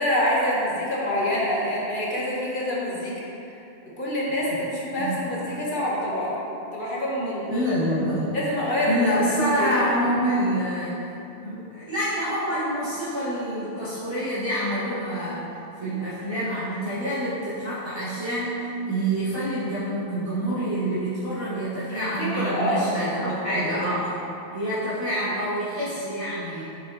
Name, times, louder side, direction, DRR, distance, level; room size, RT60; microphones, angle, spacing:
voice 1, 0.0-3.1 4.0-6.4 6.7-7.5 8.3-9.1 9.4-9.7 21.9-23.8, left 1 dB, 50° left, -6 dB, 1.4 m, -26 dB
voice 2, 5.0-5.3 7.5-8.4 8.9-11.0 11.4-15.4 15.8-24.1 24.5-26.6, right 1 dB, 25° right, -15 dB, 1.7 m, -27 dB
6.9 x 6.9 x 3.0 m, 2.8 s
omnidirectional pair, 1.1 m